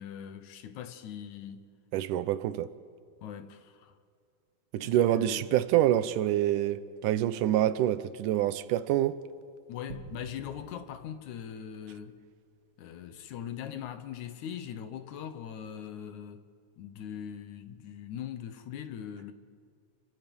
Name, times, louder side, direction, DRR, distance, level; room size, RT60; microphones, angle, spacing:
voice 1, 0.0-1.7 3.2-4.0 4.8-5.5 9.7-12.2 12.8-16.4 16.8-19.3, left 9 dB, 70° left, 2.3 m, -41 dB
voice 2, 1.9-2.7 4.7-9.2, right 12 dB, 80° right, 2.3 m, -26 dB
sound 1, 9.9-12.4, right 3 dB, 45° right, 2.3 m, -49 dB
30.0 x 23.5 x 5.4 m
omnidirectional pair, 3.8 m